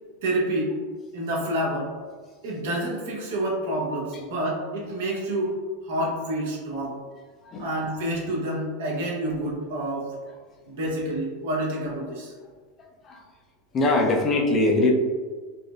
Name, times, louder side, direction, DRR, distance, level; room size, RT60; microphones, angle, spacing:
voice 1, 0.2-0.7 1.1-1.9 2.4-5.6 5.8-7.0 7.6-10.1 10.7-12.3, right 1 dB, 75° right, -2 dB, 1.0 m, -28 dB
voice 2, 12.8-13.2 13.7-14.9, left 2 dB, 30° left, 1 dB, 0.6 m, -23 dB
4.1 x 2.0 x 2.4 m, 1.5 s
supercardioid pair, 130°, 0 cm